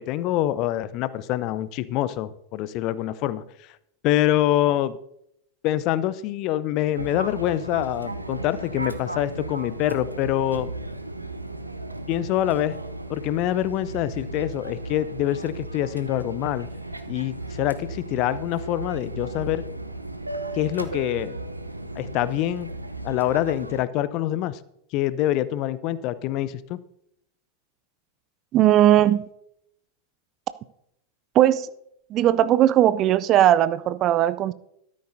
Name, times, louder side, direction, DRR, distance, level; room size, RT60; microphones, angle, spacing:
voice 1, 0.0-3.4 4.0-5.0 5.6-10.7 12.1-12.8 13.1-16.7 17.1-19.6 20.5-21.4 22.0-22.7 23.0-24.6 24.9-26.8, left 13 dB, 40° left, 0.6 m, -25 dB
Fixed-wing aircraft airplane, 6.9-23.8, right 2 dB, 85° right, 0.7 m, -35 dB
voice 2, 28.5-29.2 31.3-31.7 32.1-34.5, right 12 dB, 35° right, 0.4 m, -18 dB
13.0 x 12.5 x 2.7 m
figure-of-eight pair, 90°, 0 cm